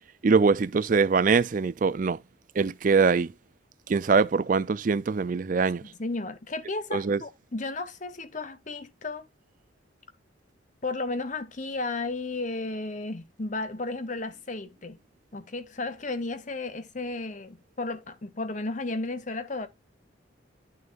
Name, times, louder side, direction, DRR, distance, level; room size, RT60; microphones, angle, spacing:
voice 1, 0.2-2.2 2.6-3.3 3.9-5.8 6.9-7.2, right 4 dB, 40° right, 0.4 m, -23 dB
voice 2, 6.0-9.3 10.8-15.0 15.3-19.7, left 3 dB, 40° left, 0.9 m, -33 dB
11.0 x 6.5 x 2.4 m
head